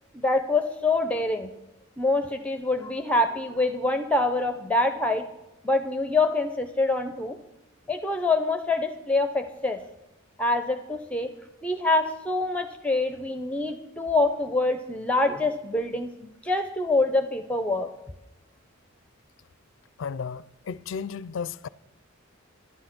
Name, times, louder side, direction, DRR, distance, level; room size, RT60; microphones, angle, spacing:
voice 1, 0.1-1.5 2.0-5.3 5.6-7.4 7.9-9.8 10.4-11.3 11.6-17.9, left 2 dB, 5° left, 0.6 m, -25 dB
voice 2, 20.0-21.7, left 6 dB, 65° left, 0.4 m, -34 dB
12.0 x 11.0 x 6.0 m
head